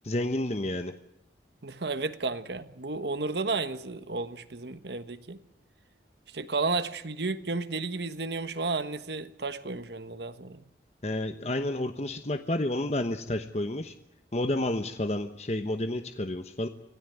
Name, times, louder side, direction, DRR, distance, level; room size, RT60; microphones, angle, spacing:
voice 1, 0.0-0.9 11.0-13.9 14.3-16.7, left 1 dB, 35° left, 1.0 m, -30 dB
voice 2, 1.6-5.4 6.3-10.6, right 3 dB, 70° right, 1.4 m, -32 dB
25.0 x 16.5 x 9.3 m
head